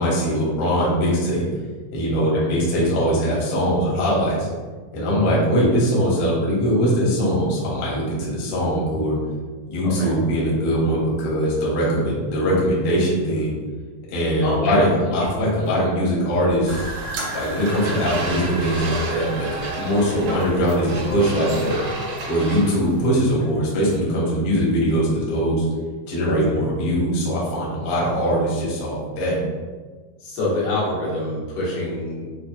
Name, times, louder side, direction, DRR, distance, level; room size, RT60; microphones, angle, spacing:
voice 1, 0.0-1.4 1.9-4.5 4.9-9.2 9.7-13.6 14.1-16.9 17.3-21.8 22.3-25.6 26.1-29.4, equal, 65° left, -6 dB, 1.4 m, -21 dB
sound 1, 15.6-15.7 16.3-17.5 18.1-18.7 19.5-20.0 20.4-22.2 22.5-22.7 23.8-23.9, left 2 dB, 55° right, 1.1 m, -37 dB
sound 2, 16.7-21.8, right 1 dB, 90° right, 1.6 m, -33 dB
sound 3, 17.6-23.1, right 2 dB, 75° right, 2.0 m, -31 dB
voice 2, 30.2-32.3, left 1 dB, 90° left, -6 dB, 3.0 m, -26 dB
6.1 x 2.4 x 2.3 m, 1.4 s
omnidirectional pair, 4.2 m